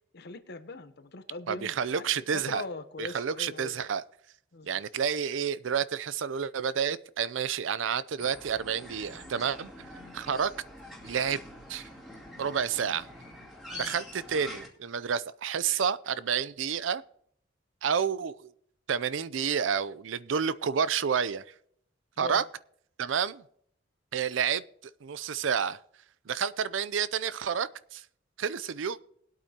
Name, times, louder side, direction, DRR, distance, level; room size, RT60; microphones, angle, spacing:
voice 1, 0.1-3.8 4.5-4.8 13.7-13.9 22.2-22.4, left 2 dB, 60° left, 0.9 m, -41 dB
voice 2, 1.5-2.6 3.0-4.0 4.7-9.9 10.1-10.5 11.0-11.4 11.7-11.9 12.4-13.1 13.8-17.0 17.8-18.5 18.9-21.4 22.2-22.4 23.0-23.4 24.1-24.6 25.0-25.8 26.3-28.0 28.4-29.0, right 7 dB, 85° right, 0.5 m, -29 dB
sound 1, 8.2-14.7, left 1 dB, ahead, 2.5 m, -45 dB
20.0 x 8.6 x 2.9 m
head